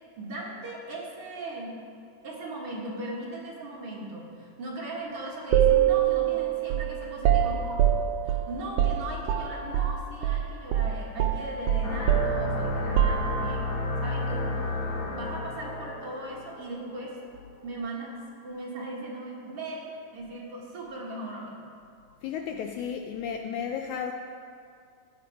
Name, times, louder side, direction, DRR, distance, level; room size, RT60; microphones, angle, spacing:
voice 1, 0.2-1.7 2.2-8.0 8.2-13.7 14.0-17.1 17.6-21.6, right 2 dB, 50° right, -4 dB, 2.3 m, -38 dB
sound 1, 5.5-10.0 10.2-10.4 10.7-13.7, right 10 dB, 90° right, 1.4 m, -25 dB
sound 2, 11.8-17.0, left 2 dB, 55° left, 1.4 m, -32 dB
voice 2, 22.2-24.1, left 7 dB, 80° left, 4 dB, 1.8 m, -33 dB
14.5 x 9.3 x 4.8 m, 2.3 s
omnidirectional pair, 3.8 m